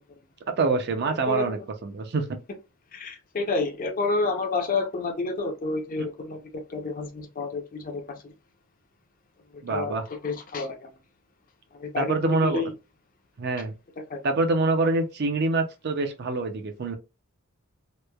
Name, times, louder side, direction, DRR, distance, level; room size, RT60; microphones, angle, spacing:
voice 1, 0.6-2.2 6.0-6.1 9.6-10.0 11.9-12.6 13.4-13.7 14.2-16.9, right 3 dB, 50° right, 0.4 m, -25 dB
voice 2, 1.3-1.6 2.9-8.3 9.7-10.9 11.8-12.2 12.4-12.7 14.1-14.2, left 3 dB, 40° left, 0.5 m, -29 dB
3.0 x 2.1 x 2.2 m
head